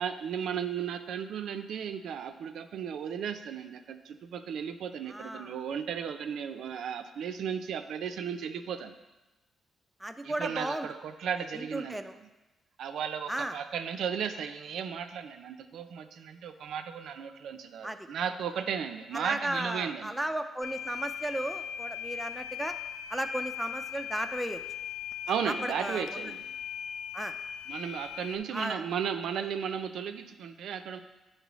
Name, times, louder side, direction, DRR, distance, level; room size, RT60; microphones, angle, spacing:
voice 1, 0.0-8.9 10.2-12.0 12.8-20.2 25.3-26.4 27.7-31.0, right 7 dB, 75° right, 8 dB, 0.4 m, -35 dB
voice 2, 5.1-5.5 10.0-10.9 11.5-12.1 13.3-13.6 17.8-18.1 19.1-22.7 23.1-24.6 25.5-26.3 27.1-27.3 28.5-28.8, right 1 dB, 5° right, 7 dB, 0.3 m, -35 dB
sound 1, 20.6-28.4, left 8 dB, 80° left, 0.3 m, -39 dB
8.1 x 5.3 x 3.0 m, 1.1 s
cardioid pair, 125°, 0 cm